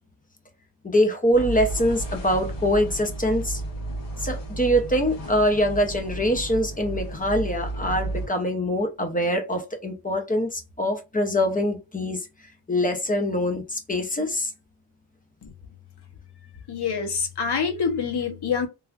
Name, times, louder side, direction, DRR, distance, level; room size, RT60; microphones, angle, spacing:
voice 1, 0.8-3.6 4.2-12.2 12.7-14.5, equal, 20° left, 0.4 m, -24 dB
sound 1, 1.3-8.3, right 2 dB, 90° left, 1.6 m, -33 dB
voice 2, 16.7-18.7, left 6 dB, 50° left, 0.8 m, -26 dB
3.2 x 2.4 x 2.2 m
wide cardioid pair, 170°, 50 cm